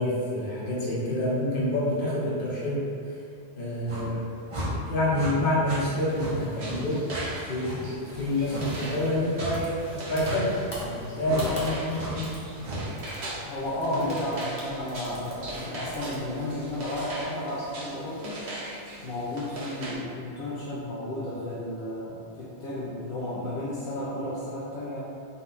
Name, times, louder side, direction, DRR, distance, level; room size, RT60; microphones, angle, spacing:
voice 1, 0.0-3.1 3.5-4.2 4.8-7.0 7.5-12.3 13.9-14.1, left 1 dB, 50° left, -8 dB, 1.2 m, -28 dB
sound 1, 3.9-4.1 4.5-4.7 5.1-5.3 5.6-5.8 6.2-6.3 6.6-6.8 7.1-7.2 7.6-7.8 8.5-8.7 9.4-9.6 10.2-10.4 11.2-11.4 11.9-12.1 12.6-12.8, right 2 dB, 35° right, 0.7 m, -35 dB
sound 2, 5.9-19.9, right 1 dB, 75° right, 1.1 m, -40 dB
sound 3, 8.1-17.2, left 1 dB, 25° left, 0.8 m, -43 dB
voice 2, 13.4-18.5 19.0-25.1, left 1 dB, 70° left, -10 dB, 1.0 m, -33 dB
4.1 x 2.3 x 4.0 m, 2.5 s
omnidirectional pair, 1.2 m